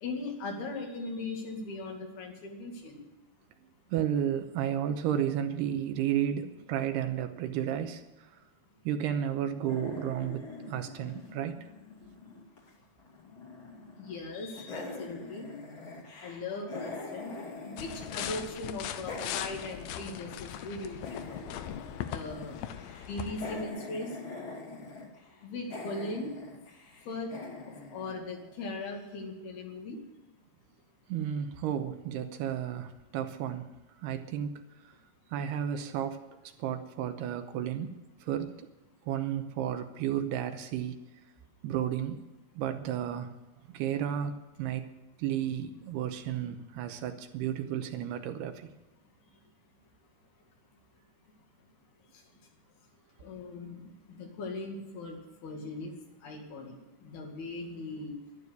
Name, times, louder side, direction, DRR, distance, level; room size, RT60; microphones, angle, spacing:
voice 1, 0.0-3.0 14.0-15.6 16.2-17.3 17.6-21.4 22.1-22.6 22.9-24.1 25.4-26.3 27.1-27.3 27.9-30.0 53.2-55.9 56.2-56.8 57.0-58.2, left 2 dB, 65° left, 4.1 m, -39 dB
voice 2, 3.9-8.3 8.9-11.7 31.1-33.7 34.0-34.9 35.3-36.2 36.6-38.7 39.1-41.0 41.6-42.2 42.6-43.3 43.7-44.3 44.6-44.9 45.2-48.7, right 10 dB, 80° right, 2.8 m, -32 dB
sound 1, 9.6-12.7 13.0-14.2 14.5-18.5 18.8-28.8, left 3 dB, 35° left, 2.6 m, -44 dB
sound 2, 17.8-23.6, left 11 dB, 85° left, 2.0 m, -39 dB
12.0 x 11.5 x 8.3 m
omnidirectional pair, 4.9 m